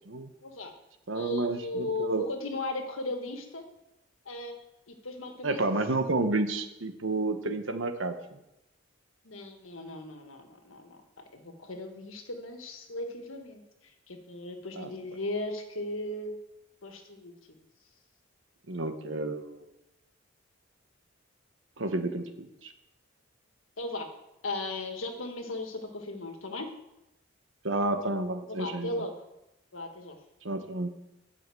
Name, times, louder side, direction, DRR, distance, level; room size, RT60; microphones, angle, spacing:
voice 1, 0.4-0.7 1.1-3.6 4.2-4.6 4.9-5.7 9.2-13.6 14.1-16.3 16.8-17.4 23.8-24.1 24.4-26.7 28.5-29.1 29.7-30.2, left 2 dB, 85° left, 5 dB, 1.6 m, -37 dB
voice 2, 1.1-2.3 5.4-8.4 14.7-14.9 18.7-19.6 21.8-22.7 27.6-29.1 30.4-30.9, right 2 dB, 70° right, 7 dB, 1.2 m, -30 dB
10.5 x 5.8 x 7.7 m, 0.90 s
head